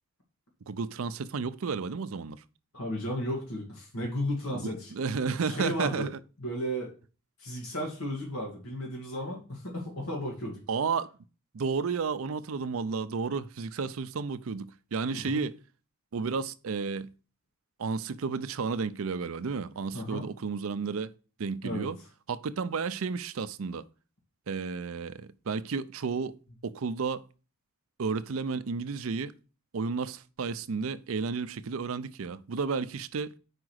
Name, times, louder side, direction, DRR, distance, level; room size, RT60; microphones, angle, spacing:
voice 1, 0.7-2.4 4.6-6.2 10.7-11.1 11.5-15.6 16.1-17.1 17.8-21.1 21.4-22.0 22.3-23.8 24.5-27.2 28.0-29.3 29.7-33.3, right 5 dB, 70° right, 0.5 m, -32 dB
voice 2, 2.7-4.9 5.4-6.1 6.4-6.9 7.4-10.6 15.1-15.4 19.9-20.3 21.6-21.9, equal, 75° left, 1.8 m, -34 dB
5.1 x 4.8 x 6.3 m
head